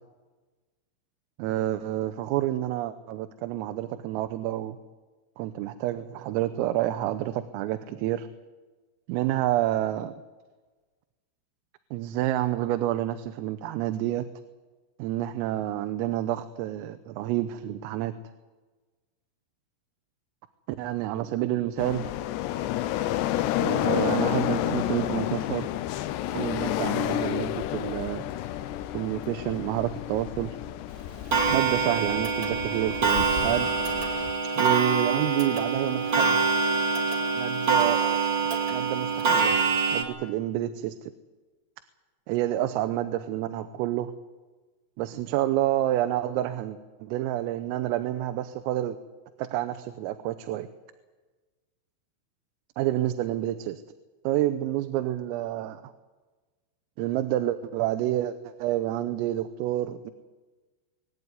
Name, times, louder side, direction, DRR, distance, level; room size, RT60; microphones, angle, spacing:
voice 1, 1.4-4.8 5.4-8.3 9.1-10.2 11.9-14.3 15.0-18.2 20.8-22.1 23.6-25.7 26.3-28.2 28.9-30.6 31.5-33.7 34.6-36.4 37.4-38.2 38.7-39.6 39.9-41.1 42.3-44.1 45.0-49.0 49.4-50.7 52.8-53.8 54.3-55.8 57.0-60.1, right 13 dB, 85° right, 10 dB, 3.5 m, -29 dB
sound 1, 21.8-34.3, left 13 dB, 80° left, 2.6 m, -30 dB
Clock, 31.3-40.0, right 5 dB, 40° right, 1.8 m, -25 dB
23.0 x 16.5 x 9.5 m, 1.3 s
omnidirectional pair, 5.9 m